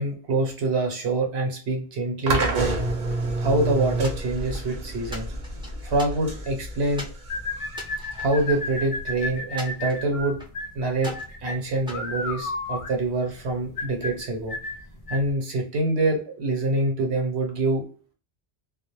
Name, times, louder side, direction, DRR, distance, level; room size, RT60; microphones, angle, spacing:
voice 1, 0.0-2.7 3.4-5.3 5.8-7.1 8.2-10.4 10.7-11.1 11.4-14.5 15.1-17.8, right 2 dB, 85° right, 2 dB, 1.1 m, -25 dB
sound 1, 2.3-9.3, right 2 dB, 55° right, 0.7 m, -30 dB
sound 2, 4.0-4.7 5.1-6.5 7.0-7.2 7.7-9.0 9.6-10.6 11.0-11.4 11.9-12.9, equal, 5° right, 0.4 m, -41 dB
sound 3, 7.3-15.3, left 2 dB, 50° left, 0.4 m, -33 dB
2.2 x 2.0 x 2.9 m, 0.41 s
omnidirectional pair, 1.1 m